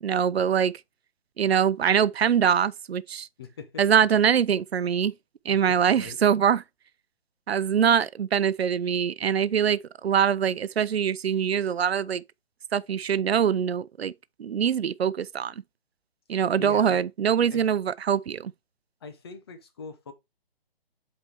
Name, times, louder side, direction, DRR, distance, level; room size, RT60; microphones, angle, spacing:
voice 1, 0.0-0.7 1.4-3.3 3.8-5.1 5.4-6.6 7.5-12.2 12.7-14.1 14.4-15.5 16.3-18.5, right 8 dB, 85° right, 0.6 m, -23 dB
voice 2, 3.4-3.8 5.5-6.2 16.6-17.0 17.5-17.7 19.0-20.1, left 5 dB, 25° left, 0.8 m, -41 dB
7.8 x 4.4 x 3.4 m
hypercardioid pair, 165°, 31 cm